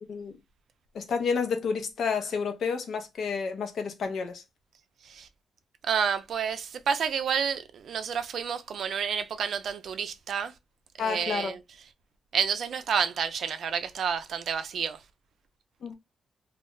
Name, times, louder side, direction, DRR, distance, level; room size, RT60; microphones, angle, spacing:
voice 1, 0.9-4.4 11.0-11.6 15.8-15.9, left 5 dB, 65° left, 0.6 m, -30 dB
voice 2, 5.9-10.5 11.0-11.6 12.3-15.0, right 7 dB, 70° right, 0.4 m, -29 dB
2.3 x 2.0 x 3.6 m
cardioid pair, 95°, 0 cm